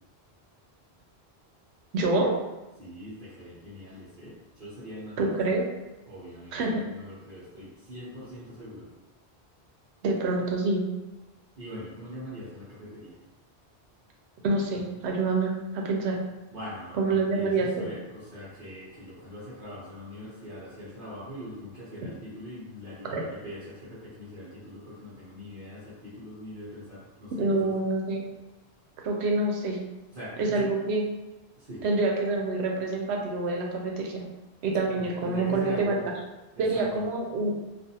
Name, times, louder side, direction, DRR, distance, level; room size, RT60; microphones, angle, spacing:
voice 1, 1.9-2.3 5.2-5.6 6.5-6.8 10.0-10.9 14.4-16.2 16.9-17.9 23.0-23.2 27.4-28.2 29.0-29.8 30.4-31.0 31.8-34.2 34.6-36.0 36.6-37.5, right 3 dB, 85° right, 0 dB, 0.8 m, -26 dB
voice 2, 2.8-5.6 6.1-8.9 11.6-13.2 16.5-27.7 30.1-30.6 31.6-31.8 35.0-36.0 36.5-37.0, equal, 60° right, -10 dB, 0.9 m, -42 dB
2.4 x 2.4 x 2.7 m, 1.1 s
omnidirectional pair, 1.1 m